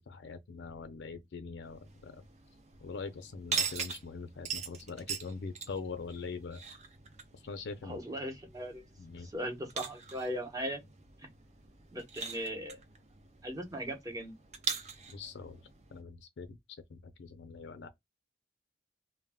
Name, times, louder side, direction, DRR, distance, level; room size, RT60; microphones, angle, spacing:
voice 1, 0.1-2.2 2.8-6.6 7.3-8.0 9.0-9.3 15.1-15.6 15.9-16.6 16.9-17.9, left 4 dB, 80° left, 0.5 m, -43 dB
sound 1, 1.6-16.0, right 6 dB, 40° right, 0.5 m, -42 dB
voice 2, 7.8-8.8 9.2-10.8 11.9-12.8 13.4-14.3, equal, 20° right, 0.9 m, -38 dB
2.2 x 2.1 x 3.4 m
head